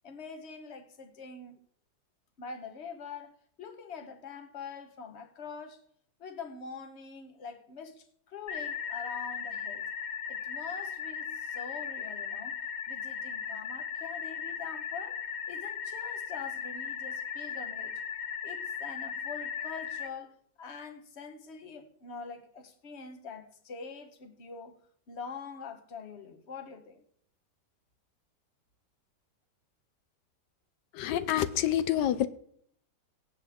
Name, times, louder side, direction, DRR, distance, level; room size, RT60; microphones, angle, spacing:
voice 1, 0.0-1.6 2.4-5.8 6.2-9.9 10.3-15.2 15.5-18.0 18.4-24.8 25.1-27.0, left 5 dB, 45° left, 1.4 m, -44 dB
sound 1, 8.5-20.1, left 7 dB, 60° left, 1.4 m, -37 dB
voice 2, 30.9-32.3, left 11 dB, 90° left, 1.3 m, -27 dB
23.5 x 7.9 x 3.6 m
omnidirectional pair, 1.8 m